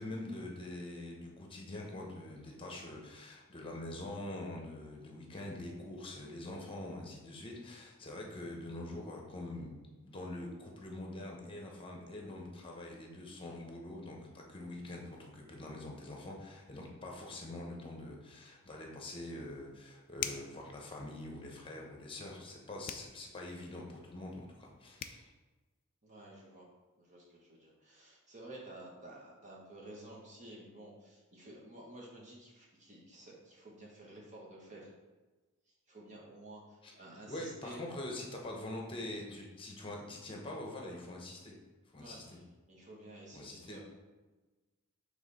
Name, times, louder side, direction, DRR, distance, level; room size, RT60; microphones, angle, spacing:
voice 1, 0.0-9.7 10.0-25.3 36.8-36.9 37.3-41.5 41.9-42.4 43.3-43.8, left 1 dB, 25° left, 0 dB, 0.9 m, -44 dB
sound 1, 20.1-20.6 22.8-23.1 24.7-24.8 25.0-25.2, left 9 dB, 40° left, 0.3 m, -39 dB
voice 2, 26.0-26.7 27.0-34.9 35.9-37.8 42.0-42.2 42.7-43.8, right 1 dB, 35° right, -4 dB, 1.3 m, -52 dB
7.1 x 3.4 x 4.0 m, 1.2 s
head